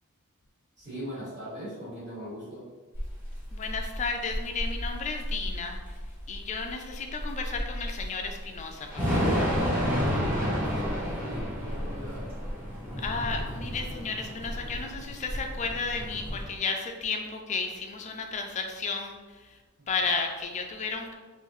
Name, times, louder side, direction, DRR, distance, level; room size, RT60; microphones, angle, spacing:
voice 1, 0.8-2.7 10.1-12.3 19.9-20.0, equal, 40° right, -10 dB, 1.5 m, -40 dB
Thunder / Rain, 2.9-16.4, equal, 10° right, 1.0 m, -31 dB
voice 2, 3.5-5.8 6.3-9.4 13.0-19.1 19.9-21.1, left 4 dB, 35° left, 3 dB, 0.3 m, -33 dB
3.7 x 2.6 x 3.0 m, 1.3 s
head